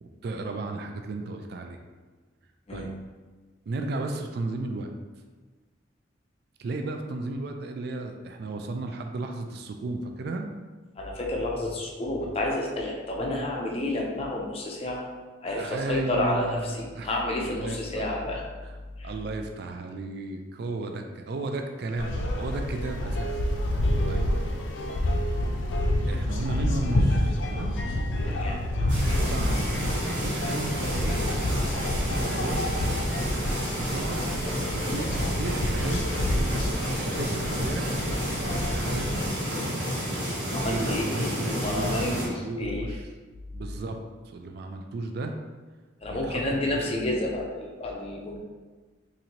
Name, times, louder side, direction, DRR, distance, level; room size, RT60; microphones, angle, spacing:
voice 1, 0.0-1.8 2.7-2.9 3.7-4.9 6.6-10.5 15.5-17.1 17.4-18.0 19.0-23.4 24.0-24.2 26.1-27.8 28.2-28.4 28.8-31.2 32.2-32.7 33.7-34.2 34.7-36.0 36.3-36.8 37.0-39.2 40.6-43.0 43.5-45.4 46.1-47.1, right 2 dB, 60° right, 5 dB, 0.3 m, -34 dB
voice 2, 11.0-15.0 15.4-18.4 19.0-19.1 28.3-28.6 40.5-42.9 46.0-48.4, left 1 dB, 30° left, -1 dB, 0.5 m, -30 dB
sound 1, 22.0-39.3, left 1 dB, 90° left, 0.5 m, -28 dB
sound 2, 28.9-42.3, equal, 75° right, 1.1 m, -30 dB
4.2 x 2.6 x 2.9 m, 1.3 s
head